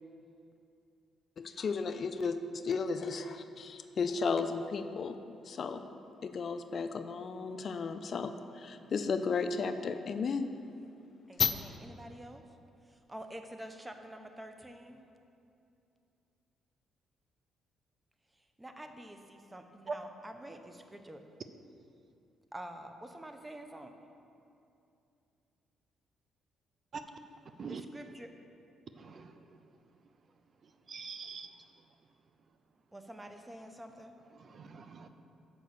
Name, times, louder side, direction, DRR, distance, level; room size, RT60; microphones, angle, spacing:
voice 1, 1.4-2.4 2.6-5.2 5.5-5.9 6.2-10.5 11.4-11.5, left 5 dB, 50° left, 9 dB, 0.4 m, -33 dB
voice 2, 11.3-12.4 12.9-15.0 18.6-21.2 22.5-23.9 27.6-28.3 32.9-34.2, right 1 dB, 15° right, 6 dB, 0.7 m, -48 dB
voice 3, 29.0-29.3 30.9-31.5 34.4-35.1, right 5 dB, 50° right, 8 dB, 0.4 m, -42 dB
6.3 x 5.3 x 6.8 m, 2.6 s
cardioid pair, 90°, 0 cm